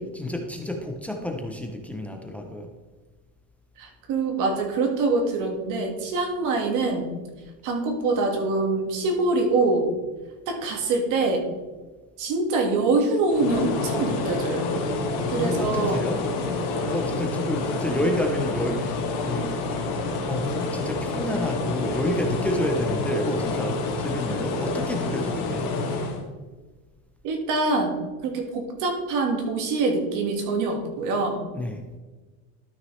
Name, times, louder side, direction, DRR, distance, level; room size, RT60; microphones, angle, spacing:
voice 1, 0.1-2.7 15.4-16.3 16.9-19.5 20.3-25.7 31.5-31.8, left 1 dB, 5° left, 3 dB, 0.4 m, -29 dB
voice 2, 3.8-7.1 7.6-9.9 10.5-11.5 12.2-14.6 15.3-16.0 27.2-28.0 28.2-31.4, right 3 dB, 45° right, 3 dB, 1.6 m, -24 dB
sound 1, 13.3-26.2, left 3 dB, 65° left, 1.9 m, -28 dB
12.5 x 5.9 x 3.1 m, 1.3 s
cardioid pair, 155°, 43 cm